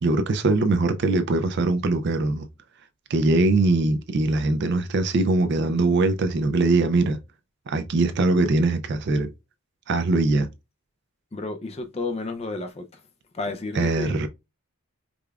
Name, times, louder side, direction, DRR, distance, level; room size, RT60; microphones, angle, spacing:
voice 1, 0.0-2.5 3.1-7.2 7.7-9.3 9.9-10.5 13.7-14.3, right 2 dB, 50° right, 0.4 m, -22 dB
voice 2, 11.3-12.9 13.3-14.2, left 3 dB, 25° left, 0.4 m, -31 dB
4.9 x 2.3 x 2.3 m
head